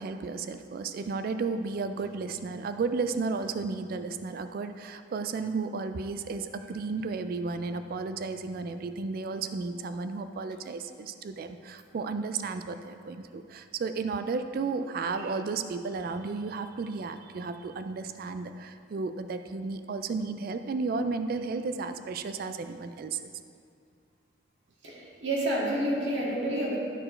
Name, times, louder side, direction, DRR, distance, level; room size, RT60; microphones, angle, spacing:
voice 1, 0.0-23.3, right 4 dB, 50° right, 9 dB, 0.3 m, -33 dB
voice 2, 24.8-26.8, right 1 dB, 70° right, -4 dB, 1.9 m, -29 dB
12.0 x 4.4 x 4.4 m, 2.3 s
head